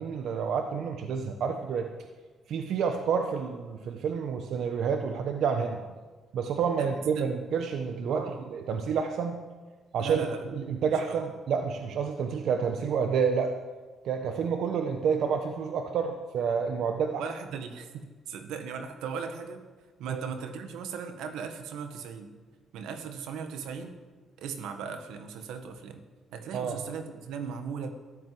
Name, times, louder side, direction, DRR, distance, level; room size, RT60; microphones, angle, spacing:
voice 1, 0.0-1.9 2.5-5.8 6.3-8.2 8.5-9.4 9.9-10.2 10.5-13.5 14.0-17.2 20.1-20.2 26.5-26.8, right 6 dB, 75° right, 5 dB, 1.1 m, -29 dB
voice 2, 8.1-8.4 10.0-10.4 10.9-11.2 17.2-19.6 20.0-22.3 22.7-23.9 24.4-26.0 26.3-27.9, right 6 dB, 90° right, 7 dB, 1.6 m, -38 dB
13.0 x 13.0 x 7.8 m, 1.3 s
cardioid pair, 90°, 0 cm